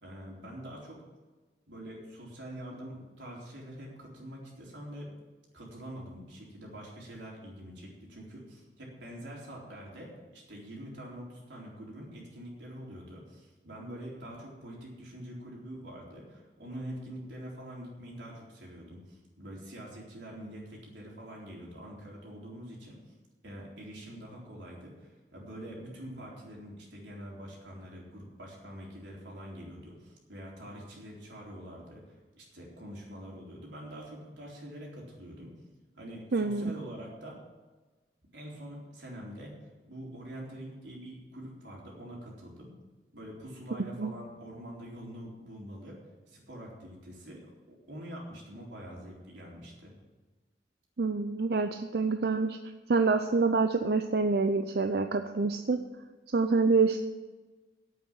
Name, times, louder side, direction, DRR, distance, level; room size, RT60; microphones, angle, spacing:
voice 1, 0.0-1.0 1.7-5.1 5.5-23.0 23.4-35.5 36.0-37.4 38.3-39.5 39.8-42.8 43.1-46.0 46.3-47.4 47.7-49.9, equal, 85° right, -3 dB, 4.0 m, -45 dB
voice 2, 36.3-36.7 44.0-44.1 51.0-52.6 52.9-55.8 56.3-57.0, right 4 dB, 60° right, 7 dB, 0.5 m, -26 dB
8.6 x 8.3 x 9.1 m, 1.3 s
head